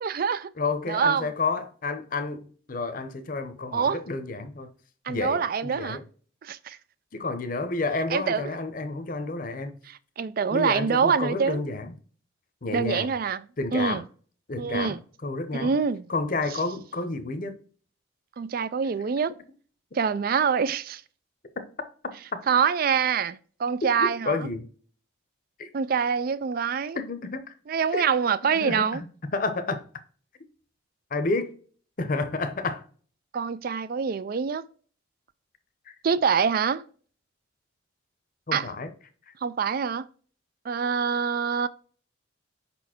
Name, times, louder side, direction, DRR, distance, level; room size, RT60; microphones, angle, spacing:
voice 1, 0.0-0.5 0.9-1.3 3.7-4.0 5.0-6.0 6.4-6.8 8.1-8.5 9.9-11.6 12.7-13.4 13.7-14.0 14.6-15.0 15.5-16.1 18.4-19.3 19.9-21.0 22.5-24.5 25.7-27.0 27.7-29.0 33.3-34.7 36.0-36.8 38.5-38.7 39.4-40.1 40.7-41.7, right 6 dB, 50° right, 0.4 m, -25 dB
voice 2, 0.6-4.7 5.1-6.0 7.1-9.8 10.5-11.9 12.6-13.1 13.6-14.0 14.5-15.7 16.1-17.6 22.3-22.4 24.0-24.7 25.6-25.7 27.0-27.4 27.9-28.0 28.5-29.0 29.3-29.8 31.1-31.5 32.0-32.8 38.5-38.9, left 3 dB, 45° left, 0.8 m, -30 dB
5.4 x 4.3 x 4.3 m
head